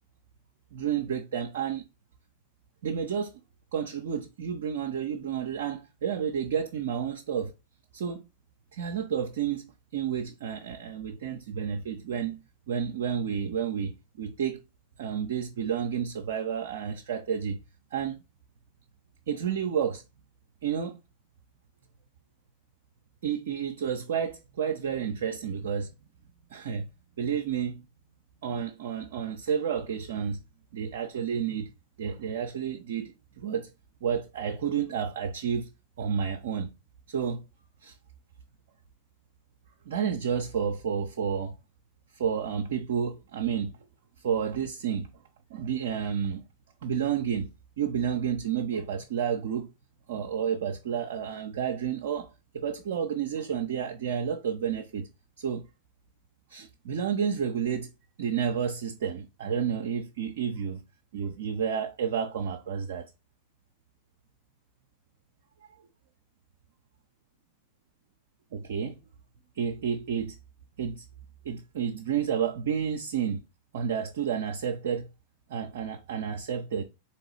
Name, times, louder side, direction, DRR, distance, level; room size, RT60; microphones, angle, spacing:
voice 1, 0.7-1.8 2.8-3.3 3.7-7.5 7.9-8.2 8.7-9.6 9.9-12.4 12.7-14.6 15.0-17.6 17.9-18.2 19.3-20.0 20.6-21.0 23.2-25.9 26.5-26.9 27.2-27.8 28.4-30.4 30.7-31.7 32.0-33.7 34.0-35.7 36.0-36.7 37.1-37.4 37.8-37.9 39.9-41.5 42.2-43.8 44.2-45.1 45.5-46.4 46.8-47.5 47.8-49.7 50.1-55.1 55.4-55.6 56.5-57.9 58.2-60.8 61.1-63.1 68.5-69.0 69.6-70.4 70.8-71.0 71.4-73.4 73.7-75.1 75.5-76.8, right 7 dB, 60° right, 0.4 m, -30 dB
3.8 x 3.0 x 2.9 m
figure-of-eight pair, 90°, 0 cm